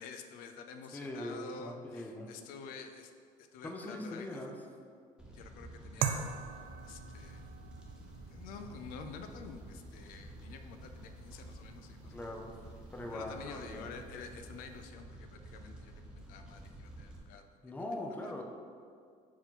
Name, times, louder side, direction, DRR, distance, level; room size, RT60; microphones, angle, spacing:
voice 1, 0.0-3.1 3.4-4.4 5.3-6.3 6.8-7.4 8.3-12.4 13.1-17.4 18.0-18.4, left 5 dB, 80° left, 6 dB, 0.5 m, -49 dB
voice 2, 0.9-2.3 3.6-4.5 12.0-12.5 12.9-14.0 17.6-18.4, left 1 dB, 10° left, 1 dB, 0.6 m, -41 dB
Fire, 5.2-17.2, right 1 dB, 5° right, 0.9 m, -50 dB
sound 1, 6.0-14.8, right 8 dB, 75° right, 0.4 m, -44 dB
4.8 x 3.8 x 5.6 m, 2.2 s
cardioid pair, 150°, 15 cm